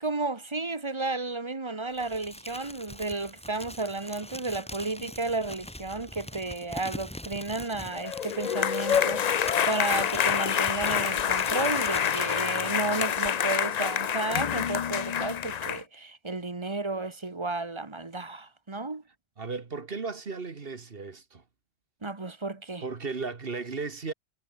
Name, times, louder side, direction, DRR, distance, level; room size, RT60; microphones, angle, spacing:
voice 1, 0.0-19.0 22.0-22.8, right 3 dB, 30° right, 1.4 m, -33 dB
Crumpling crinkling, 1.9-14.0, left 1 dB, 5° left, 1.5 m, -43 dB
sound 1, 7.9-15.8, left 8 dB, 50° left, 0.6 m, -27 dB
voice 2, 19.4-21.4 22.8-24.1, right 4 dB, 65° right, 1.8 m, -35 dB
omnidirectional pair, 1.0 m